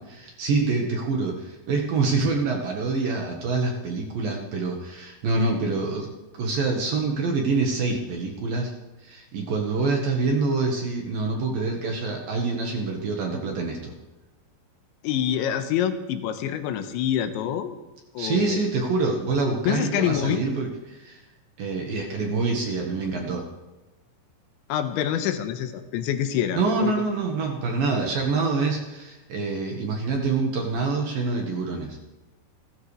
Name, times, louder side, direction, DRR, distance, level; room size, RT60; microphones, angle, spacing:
voice 1, 0.1-6.1 6.3-8.7 9.0-13.9 18.2-21.2 21.6-23.4 26.6-32.0, right 3 dB, 60° right, 1 dB, 2.9 m, -26 dB
voice 2, 15.0-17.8 18.1-18.6 19.7-20.4 24.7-26.9, left 10 dB, 90° left, 8 dB, 3.4 m, -26 dB
29.5 x 12.5 x 3.4 m, 1.1 s
omnidirectional pair, 5.2 m